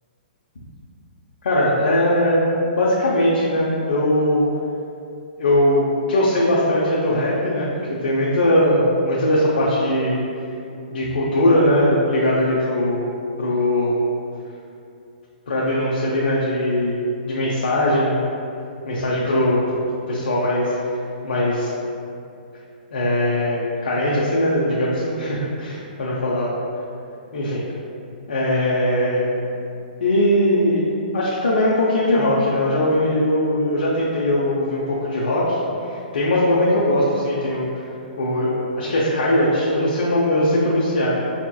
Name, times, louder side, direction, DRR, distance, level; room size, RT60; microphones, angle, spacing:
voice 1, 1.4-4.5 5.4-10.2 10.9-13.0 13.4-14.0 15.5-17.0 17.2-18.2 18.9-19.8 20.1-20.7 21.2-21.7 22.9-26.6 27.3-27.6 28.3-29.3 30.0-30.8 31.1-37.7 38.2-41.3, left 1 dB, 90° left, -6 dB, 0.6 m, -20 dB
4.9 x 2.9 x 2.3 m, 2.6 s
hypercardioid pair, 165°, 5 cm